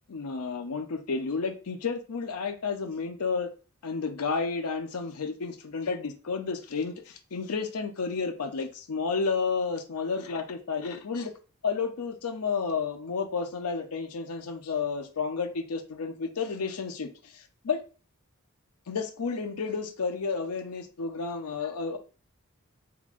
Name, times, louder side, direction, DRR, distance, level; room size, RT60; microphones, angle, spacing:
voice 1, 0.1-3.5 3.8-11.3 11.6-17.8 18.9-22.0, left 5 dB, 90° left, 0.6 m, -31 dB
3.6 x 3.0 x 2.4 m
head